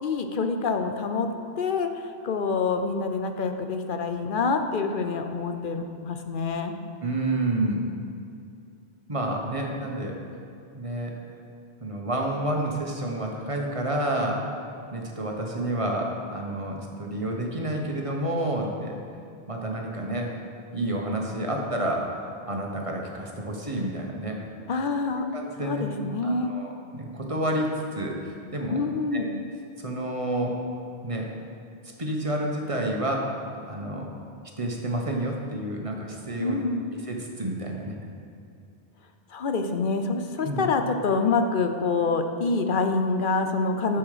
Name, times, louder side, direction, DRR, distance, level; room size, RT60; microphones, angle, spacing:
voice 1, 0.0-1.3 1.6-6.7 24.7-25.2 25.6-26.5 28.7-29.3 36.4-36.9 39.3-44.0, left 4 dB, 55° left, 6 dB, 0.8 m, -26 dB
voice 2, 7.0-7.8 9.1-10.2 10.7-11.1 11.8-14.6 14.9-19.0 19.5-20.3 20.7-24.4 25.3-25.8 26.2-28.8 29.1-29.2 29.8-30.6 31.0-31.3 32.0-34.1 34.6-36.6 37.0-37.9 40.4-40.6, right 1 dB, 30° right, 0 dB, 1.2 m, -29 dB
11.0 x 7.1 x 5.0 m, 2.6 s
omnidirectional pair, 1.1 m